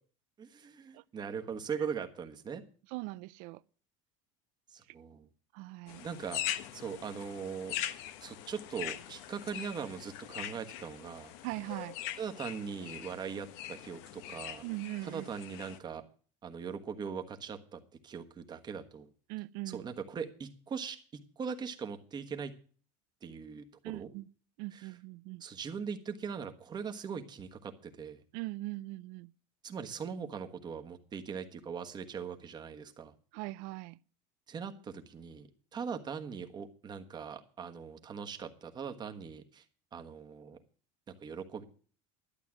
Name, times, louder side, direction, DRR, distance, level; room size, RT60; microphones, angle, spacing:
voice 1, 0.4-2.6 4.7-5.3 6.0-6.4 6.7-7.7 8.2-11.3 12.2-14.6 15.0-16.0 16.4-19.1 19.7-22.5 23.2-24.1 24.7-24.9 25.4-28.2 29.6-33.1 34.5-39.6 39.9-40.6 41.2-41.6, right 6 dB, 25° right, 1.3 m, -40 dB
voice 2, 2.9-3.6 5.5-6.1 11.4-12.0 14.6-15.3 19.3-19.9 23.8-24.3 24.6-25.4 28.3-29.3 33.3-34.0, right 20 dB, 65° right, 0.5 m, -40 dB
sound 1, 5.9-15.8, left 12 dB, 70° left, 1.0 m, -42 dB
12.0 x 8.2 x 6.0 m
supercardioid pair, 130°, 16 cm